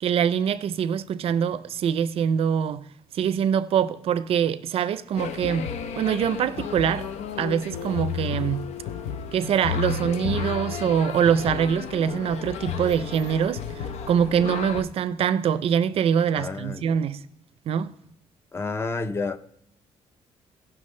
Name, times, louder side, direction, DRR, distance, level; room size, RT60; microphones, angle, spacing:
voice 1, 0.0-2.9 3.1-5.7 6.0-7.1 7.4-8.6 9.3-17.2 17.7-17.9, right 8 dB, 60° right, 0.5 m, -24 dB
sound 1, 5.2-14.8, left 7 dB, 80° left, 0.7 m, -32 dB
voice 2, 16.4-17.0 18.5-19.4, left 3 dB, 20° left, 0.5 m, -30 dB
17.5 x 5.9 x 3.2 m
cardioid pair, 145°, 11 cm